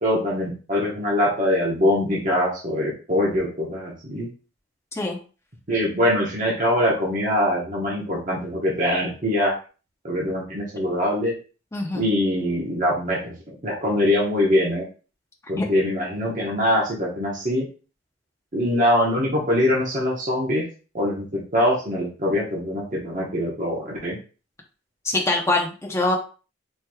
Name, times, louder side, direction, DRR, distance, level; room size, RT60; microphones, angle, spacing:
voice 1, 0.0-4.3 5.7-9.5 10.0-11.3 11.9-14.8 15.5-17.7 18.5-20.7 20.9-24.2, left 1 dB, 40° right, -4 dB, 1.0 m, -23 dB
voice 2, 11.7-12.1 15.6-15.7 25.0-26.2, left 2 dB, 15° left, 1 dB, 0.6 m, -23 dB
4.5 x 3.1 x 2.3 m, 0.36 s
head